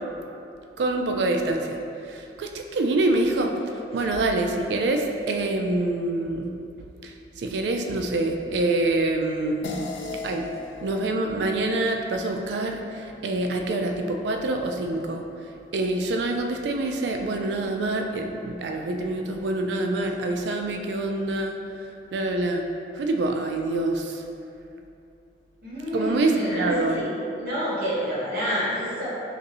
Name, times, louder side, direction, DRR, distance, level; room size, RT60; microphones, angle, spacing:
voice 1, 0.8-1.8 2.1-3.5 3.9-6.5 7.0-9.7 10.2-10.5 10.8-15.2 15.7-21.6 22.1-22.6 22.9-24.2 25.9-27.0, right 2 dB, 75° right, 3 dB, 0.3 m, -26 dB
sound 1, 9.6-14.4, left 3 dB, 85° left, 0.4 m, -40 dB
voice 2, 25.6-27.1 27.4-29.1, equal, 55° right, -10 dB, 1.1 m, -29 dB
2.6 x 2.5 x 4.1 m, 2.6 s
head